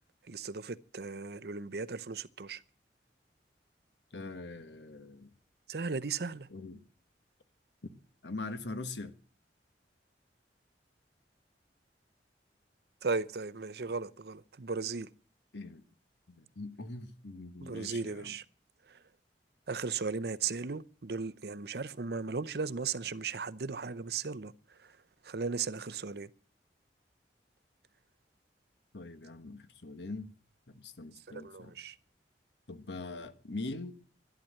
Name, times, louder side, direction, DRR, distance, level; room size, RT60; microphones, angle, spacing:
voice 1, 0.3-2.6 5.7-6.5 13.0-15.1 17.6-18.4 18.9-19.0 19.7-25.0 25.2-26.3 31.3-32.0, right 4 dB, 65° right, 0.7 m, -36 dB
voice 2, 4.1-5.3 6.5-6.8 7.8-7.9 8.2-9.1 15.5-15.8 16.3-18.3 28.9-30.3 30.7-31.7 32.7-34.0, left 2 dB, 80° left, 1.4 m, -42 dB
12.0 x 11.5 x 7.6 m
head